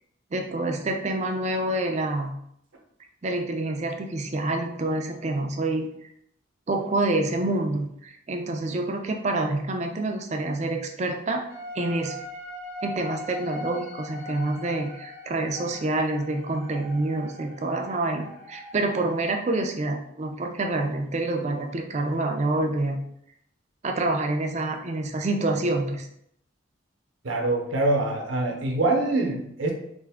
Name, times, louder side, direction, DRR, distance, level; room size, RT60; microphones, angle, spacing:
voice 1, 0.3-2.3 3.2-5.9 6.7-11.4 11.7-12.2 12.8-23.0 23.8-26.1, right 2 dB, 35° right, 3 dB, 0.4 m, -27 dB
sound 1, 11.5-19.2, left 1 dB, 50° left, 1.4 m, -40 dB
voice 2, 27.2-29.7, right 2 dB, 75° right, 1 dB, 0.8 m, -24 dB
3.4 x 2.6 x 3.5 m, 0.73 s
head